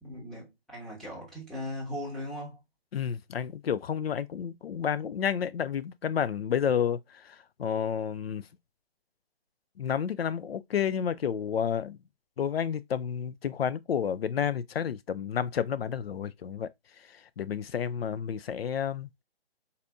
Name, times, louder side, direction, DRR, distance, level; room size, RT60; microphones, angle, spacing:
voice 1, 0.0-2.6, left 1 dB, ahead, 1.0 m, -38 dB
voice 2, 2.9-8.5 9.8-12.0 12.4-16.7 17.1-19.1, left 8 dB, 70° left, 0.6 m, -30 dB
4.1 x 2.7 x 3.4 m
hypercardioid pair, 155°, 31 cm